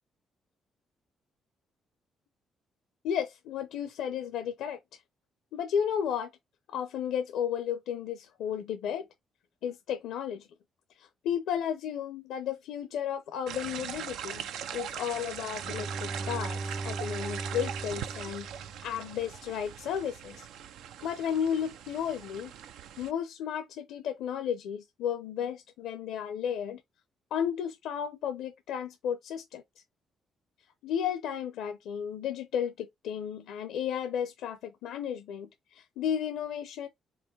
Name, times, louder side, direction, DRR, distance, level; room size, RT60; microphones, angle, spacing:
voice 1, 3.0-5.0 5.5-6.3 6.7-9.1 9.6-10.5 11.0-18.5 18.8-20.5 21.0-22.5 23.0-26.8 27.3-29.6 30.8-36.9, left 8 dB, 85° left, 0.6 m, -33 dB
sound 1, 13.5-23.1, right 9 dB, 90° right, 0.4 m, -41 dB
Bowed string instrument, 15.5-19.3, right 3 dB, 15° right, 0.4 m, -38 dB
4.7 x 3.0 x 3.3 m
cardioid pair, 90°, 0 cm